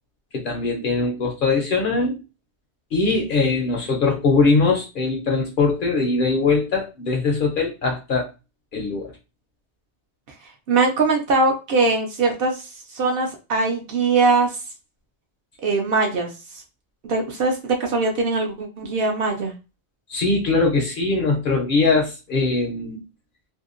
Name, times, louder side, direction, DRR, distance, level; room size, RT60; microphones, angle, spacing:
voice 1, 0.3-2.2 2.9-8.3 8.7-9.1 20.1-23.0, left 3 dB, 55° left, 2 dB, 0.6 m, -21 dB
voice 2, 10.7-14.6 15.6-16.6 17.0-19.5, right 3 dB, 60° right, 2 dB, 0.7 m, -21 dB
2.7 x 2.1 x 2.4 m, 0.29 s
omnidirectional pair, 1.2 m